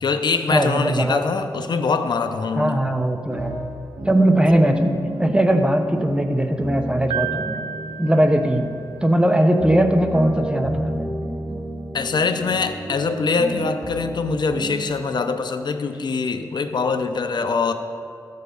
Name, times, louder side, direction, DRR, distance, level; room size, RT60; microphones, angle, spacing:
voice 1, 0.0-2.8 11.9-17.7, left 4 dB, 70° left, 8 dB, 0.6 m, -23 dB
voice 2, 0.5-1.2 2.6-3.6 4.1-7.6 8.0-8.7 9.0-11.1, right 1 dB, 10° right, 5 dB, 0.9 m, -19 dB
sound 1, 3.3-14.8, equal, 60° right, 2.4 m, -32 dB
Piano, 7.1-9.2, right 10 dB, 90° right, 0.5 m, -32 dB
14.0 x 6.7 x 5.3 m, 2.4 s
wide cardioid pair, 80°, 8 cm